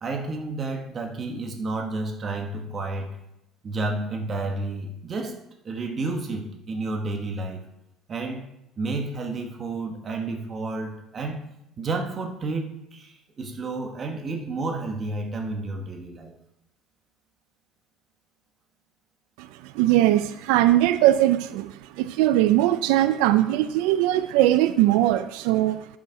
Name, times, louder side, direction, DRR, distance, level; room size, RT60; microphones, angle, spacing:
voice 1, 0.0-3.2 3.6-5.4 5.6-7.6 8.1-8.5 8.8-11.5 11.8-16.3, right 3 dB, 25° right, 3 dB, 1.3 m, -31 dB
voice 2, 19.4-25.9, right 14 dB, 85° right, 11 dB, 0.4 m, -20 dB
11.0 x 6.4 x 4.5 m, 0.86 s
cardioid pair, 165°, 0 cm